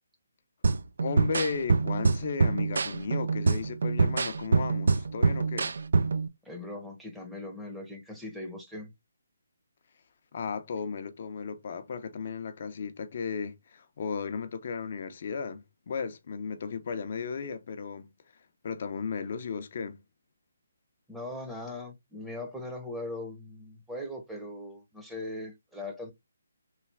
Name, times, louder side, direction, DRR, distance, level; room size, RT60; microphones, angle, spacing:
sound 1, 0.6-6.3, right 4 dB, 65° right, 0.3 m, -26 dB
voice 1, 1.0-5.7 10.3-18.1 18.6-20.0, left 5 dB, 50° left, 0.6 m, -35 dB
voice 2, 6.4-8.9 21.1-26.1, left 1 dB, 5° right, 0.8 m, -40 dB
3.2 x 2.3 x 3.4 m
figure-of-eight pair, 150°, 0 cm